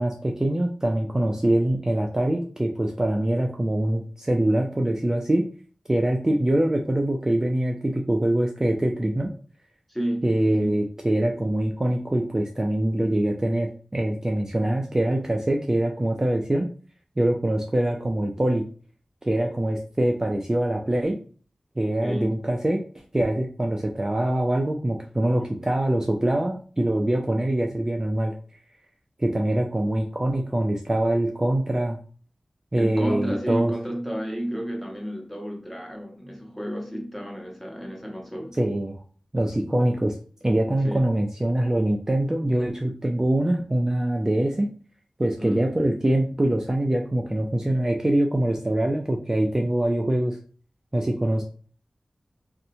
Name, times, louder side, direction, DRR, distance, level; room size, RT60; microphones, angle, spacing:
voice 1, 0.0-5.4 5.9-9.3 10.2-16.7 17.2-18.6 19.2-21.2 21.8-22.8 23.1-28.3 29.2-32.0 32.7-33.7 38.6-39.0 39.3-40.2 40.4-44.7 45.2-50.4 50.9-51.4, right 1 dB, 25° right, 0.3 m, -24 dB
voice 2, 9.9-10.8 22.0-22.3 32.8-38.6 40.8-41.1 45.4-45.7, equal, 5° left, 0.7 m, -31 dB
2.7 x 2.1 x 2.6 m
wide cardioid pair, 70°, 2 cm